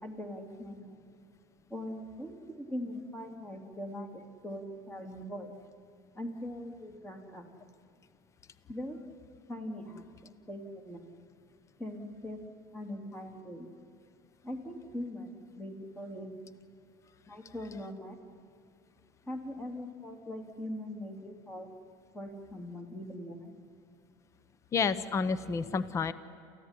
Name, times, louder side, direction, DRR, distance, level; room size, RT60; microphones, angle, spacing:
voice 1, 0.0-1.1 1.7-5.5 6.1-7.4 8.7-9.0 9.5-11.1 11.8-12.4 12.7-13.7 14.4-15.3 15.5-16.3 17.3-18.2 19.3-21.7 22.1-23.5, left 1 dB, 15° left, 4 dB, 3.2 m, -41 dB
voice 2, 24.7-26.1, left 5 dB, 30° left, 15 dB, 0.9 m, -30 dB
28.5 x 15.0 x 10.0 m, 2.6 s
supercardioid pair, 105°, 10 cm